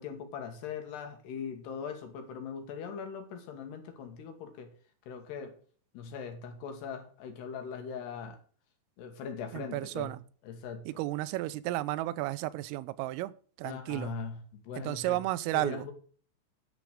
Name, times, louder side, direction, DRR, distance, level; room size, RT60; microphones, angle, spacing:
voice 1, 0.0-4.7 5.1-5.6 5.9-8.4 9.0-10.1 10.4-10.9 13.6-15.2 15.5-15.9, left 6 dB, 65° left, 6 dB, 3.3 m, -40 dB
voice 2, 9.5-10.2 10.9-14.1 14.8-15.9, right 17 dB, 90° right, 16 dB, 3.3 m, -33 dB
10.5 x 7.8 x 6.3 m, 0.43 s
omnidirectional pair, 5.7 m